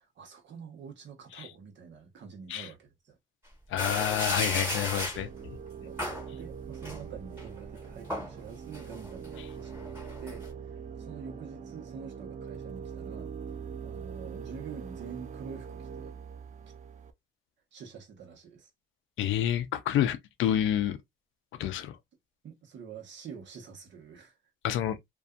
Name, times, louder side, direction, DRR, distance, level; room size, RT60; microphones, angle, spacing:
voice 1, 0.0-3.2 5.8-6.0 6.3-13.3 13.8-16.1 17.7-18.7 22.4-24.4, right 6 dB, 65° right, 1.0 m, -46 dB
voice 2, 3.7-5.6 19.2-21.0 21.6-22.0 24.6-25.0, left 11 dB, 80° left, 0.5 m, -29 dB
sound 1, 3.8-5.2 6.0-6.3 6.8-7.4 7.8-8.3 8.7-10.5, left 1 dB, 10° right, 1.2 m, -34 dB
sound 2, 5.1-17.1, right 7 dB, 40° right, 0.4 m, -42 dB
2.6 x 2.3 x 2.3 m
cardioid pair, 90°, 20 cm